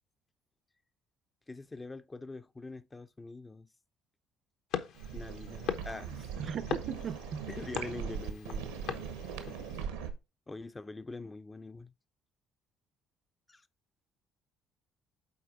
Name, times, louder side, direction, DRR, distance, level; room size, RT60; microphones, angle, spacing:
voice 1, 1.5-3.7 5.1-6.3 7.5-9.0 10.5-11.9 13.5-13.6, left 3 dB, 20° left, 0.4 m, -44 dB
sound 1, 4.7-9.9, left 8 dB, 70° left, 0.8 m, -41 dB
sound 2, 4.9-10.1, right 7 dB, 85° right, 1.0 m, -40 dB
voice 2, 6.4-7.8, right 7 dB, 50° right, 0.6 m, -39 dB
7.9 x 4.3 x 3.7 m
hypercardioid pair, 55°, 0 cm